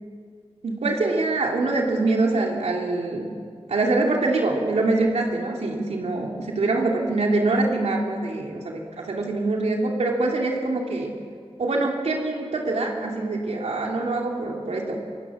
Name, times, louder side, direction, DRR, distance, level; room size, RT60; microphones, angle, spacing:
voice 1, 0.6-3.3 3.7-11.1 11.6-15.0, right 2 dB, 90° right, 0 dB, 2.9 m, -24 dB
29.0 x 17.5 x 6.3 m, 2.2 s
wide cardioid pair, 85°, 11 cm